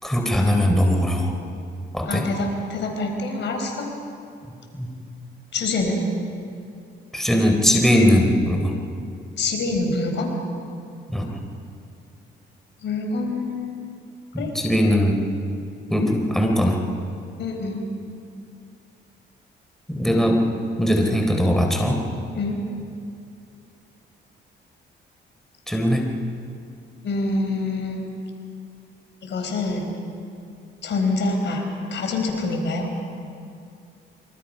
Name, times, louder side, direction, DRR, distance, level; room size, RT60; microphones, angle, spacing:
voice 1, 0.0-1.3 1.9-2.3 4.7-5.0 7.1-8.7 11.1-11.3 14.3-15.2 15.9-16.8 19.9-20.4 20.8-22.0 25.7-26.1, equal, ahead, 1 dB, 3.8 m, -20 dB
voice 2, 2.1-3.9 5.5-6.0 9.4-10.4 12.8-14.0 14.4-14.5 17.4-17.8 22.4-22.7 27.0-28.0 29.2-29.9 30.8-31.6 31.9-32.9, left 3 dB, 65° left, 3 dB, 4.9 m, -26 dB
26.5 x 25.5 x 5.6 m, 2.4 s
cardioid pair, 90°, 20 cm